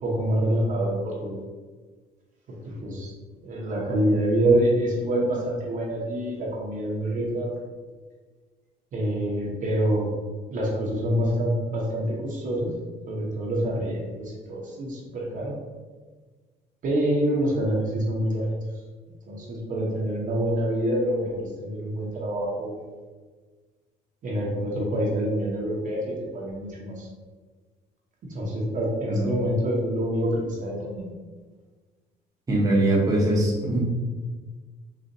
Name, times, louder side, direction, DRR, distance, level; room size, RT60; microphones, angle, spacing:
voice 1, 0.0-1.4 2.5-2.6 2.8-3.1 3.4-7.5 8.9-10.1 10.5-12.7 13.1-15.5 16.8-18.5 19.3-22.9 24.2-27.1 28.3-31.1, right 1 dB, 50° right, -3 dB, 0.8 m, -26 dB
voice 2, 32.5-33.8, right 1 dB, 20° right, -4 dB, 0.8 m, -22 dB
3.9 x 2.4 x 2.6 m, 1.4 s
cardioid pair, 110°, 17 cm